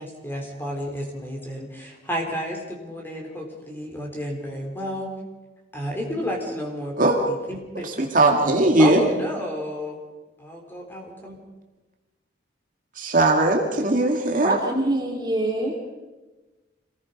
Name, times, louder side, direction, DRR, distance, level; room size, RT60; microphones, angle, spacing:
voice 1, 0.0-5.1 5.7-7.8 8.8-10.0 10.4-11.3, equal, 10° left, 0 dB, 4.2 m, -31 dB
voice 2, 7.8-9.0 13.0-14.6, right 2 dB, 45° right, 2 dB, 2.1 m, -19 dB
voice 3, 14.4-15.7, right 1 dB, 20° right, 0 dB, 2.5 m, -25 dB
26.5 x 19.5 x 5.3 m, 1.2 s
head